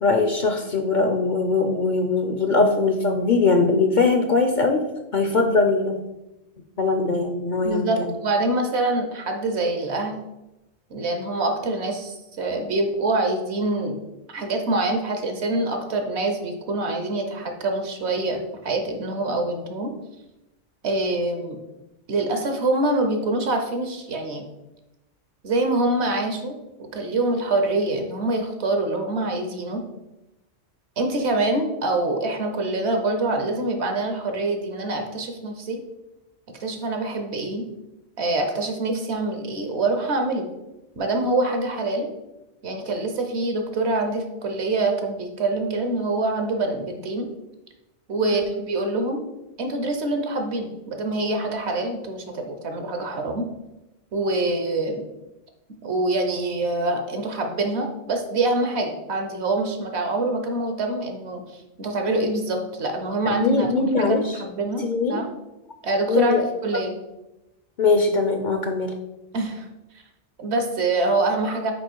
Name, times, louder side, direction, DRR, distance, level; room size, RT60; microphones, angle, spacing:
voice 1, 0.0-4.8 5.1-6.0 6.8-8.1 48.3-48.4 63.4-64.3 64.8-65.2 66.1-66.4 67.8-68.9, left 3 dB, 55° left, 5 dB, 0.6 m, -21 dB
voice 2, 7.6-10.2 10.9-14.0 14.3-19.9 20.8-21.6 22.1-24.4 25.4-26.5 26.8-29.8 31.0-35.8 36.6-37.6 38.2-40.5 41.0-42.1 42.6-47.3 48.1-49.2 49.6-53.5 54.1-55.0 55.8-61.4 61.8-63.7 64.0-64.8 65.1-65.3 65.8-66.9 69.3-69.7 70.4-71.7, right 2 dB, 70° right, 5 dB, 1.2 m, -25 dB
5.2 x 4.8 x 4.5 m, 0.95 s
omnidirectional pair, 1.2 m